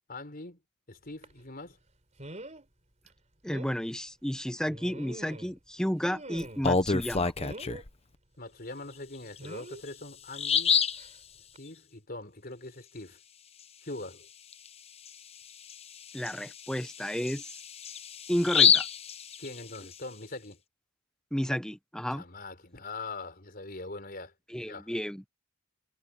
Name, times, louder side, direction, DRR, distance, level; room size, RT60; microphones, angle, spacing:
voice 1, 0.1-0.6 0.9-1.8 8.4-10.8 11.6-13.2 13.8-14.3 19.4-20.6 22.1-24.3 24.6-24.9, left 2 dB, 45° left, 4.9 m, -42 dB
sound 1, 1.2-1.4 2.2-2.6 3.1-3.2 3.5-3.8 4.7-5.6 6.0-6.8 7.4-7.8 9.4-9.8 11.0-11.2 11.5-11.6, right 1 dB, 35° right, 4.2 m, -44 dB
voice 2, 3.4-7.3 16.1-17.5 18.3-18.9 21.3-22.2 24.5-25.2, equal, 5° left, 1.0 m, -32 dB
Bird vocalization bird call bird song, 6.4-7.9 9.4-9.5 9.9-10.0 10.3-11.1 14.5-14.7 15.1-15.2 15.7-19.9, left 6 dB, 30° left, 0.9 m, -27 dB
head